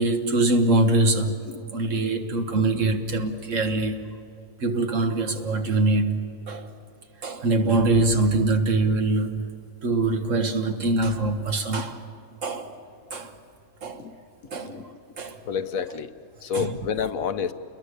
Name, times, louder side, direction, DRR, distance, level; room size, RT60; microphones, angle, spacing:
voice 1, 0.0-1.4 1.7-4.0 4.6-6.2 6.5-6.7 7.2-9.4 9.8-12.0 12.4-12.7 13.1-13.3 13.8-14.1 14.5-14.8 15.2-15.4 16.5-16.8, right 2 dB, 60° right, 1.8 m, -23 dB
voice 2, 1.5-1.9 14.0-14.1 14.5-15.0 15.4-16.1 16.4-17.5, left 7 dB, 75° left, 1.2 m, -30 dB
29.0 x 21.5 x 6.7 m
omnidirectional pair, 1.5 m